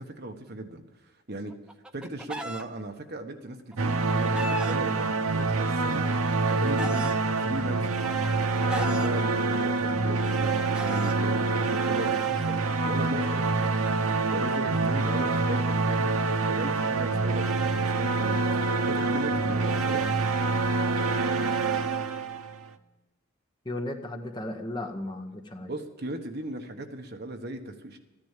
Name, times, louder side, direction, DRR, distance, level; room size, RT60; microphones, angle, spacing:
voice 1, 0.0-1.5 1.9-6.1 6.4-7.1 7.4-7.9 8.7-12.6 12.8-13.7 14.3-18.4 18.9-20.0 25.6-28.0, right 1 dB, 45° right, 4 dB, 1.3 m, -37 dB
Chicken rooster, 1.5-2.6 3.7-4.8 5.7-7.2 8.0-9.1 10.1-11.2 12.3-15.6, equal, 5° right, 0.6 m, -37 dB
sound 1, 3.8-22.7, right 3 dB, 80° right, 0.8 m, -26 dB
voice 2, 23.6-25.7, left 1 dB, 20° left, 5 dB, 1.0 m, -35 dB
14.0 x 10.5 x 7.4 m, 1.1 s
head